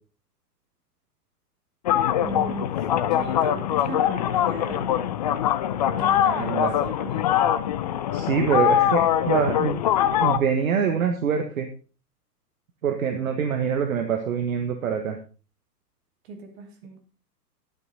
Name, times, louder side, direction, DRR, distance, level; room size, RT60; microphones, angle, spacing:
sound 1, 1.8-10.4, left 10 dB, 25° left, 0.5 m, -23 dB
voice 1, 2.2-5.0 6.0-7.3 16.2-17.0, right 4 dB, 40° right, 5 dB, 3.0 m, -38 dB
voice 2, 6.2-6.7 8.1-9.8 10.2-11.7 12.8-15.2, right 7 dB, 55° right, 6 dB, 1.5 m, -25 dB
12.5 x 9.1 x 4.1 m, 0.36 s
figure-of-eight pair, 110°, 48 cm